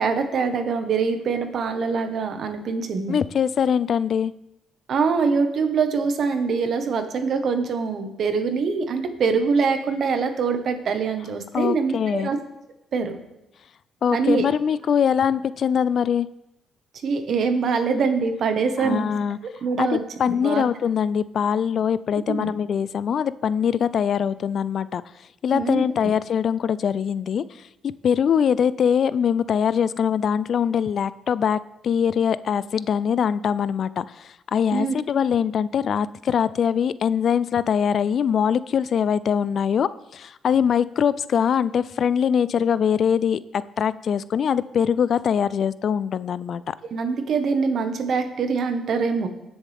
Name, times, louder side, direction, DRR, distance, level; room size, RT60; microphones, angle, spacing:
voice 1, 0.0-3.2 4.9-12.4 12.9-13.2 14.1-14.4 17.0-19.1 19.6-20.0 20.4-20.6 22.3-22.5 25.5-25.8 34.7-34.9 46.9-49.3, right 5 dB, 60° right, 7 dB, 1.5 m, -24 dB
voice 2, 3.1-4.3 11.5-12.3 14.0-16.3 18.8-19.4 19.8-19.9 20.2-25.0 25.4-27.4 28.0-43.4 43.8-46.7, left 7 dB, 60° left, 17 dB, 0.4 m, -22 dB
20.0 x 7.1 x 3.6 m, 0.88 s
cardioid pair, 90°, 0 cm